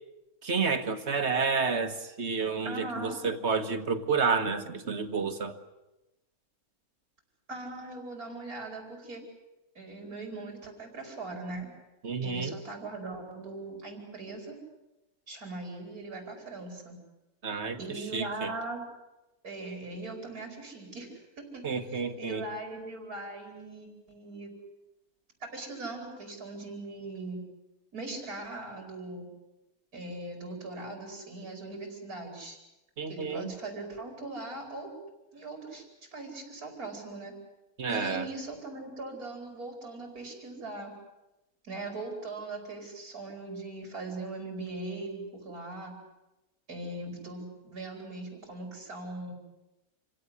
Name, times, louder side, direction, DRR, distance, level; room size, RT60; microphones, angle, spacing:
voice 1, 0.4-5.6 12.0-12.6 17.4-17.8 18.1-18.5 21.6-22.4 33.0-33.5 37.8-38.3, right 5 dB, 50° right, 9 dB, 1.6 m, -30 dB
voice 2, 2.6-3.2 7.5-9.2 9.7-11.7 12.2-14.6 15.3-17.0 17.8-18.8 19.4-24.5 25.4-27.4 27.9-29.2 29.9-32.6 33.1-34.9 35.3-35.8 36.1-37.3 37.9-40.9 41.6-46.0 46.7-49.3, right 2 dB, 85° right, 3 dB, 5.1 m, -40 dB
26.5 x 17.0 x 9.8 m, 0.99 s
omnidirectional pair, 1.5 m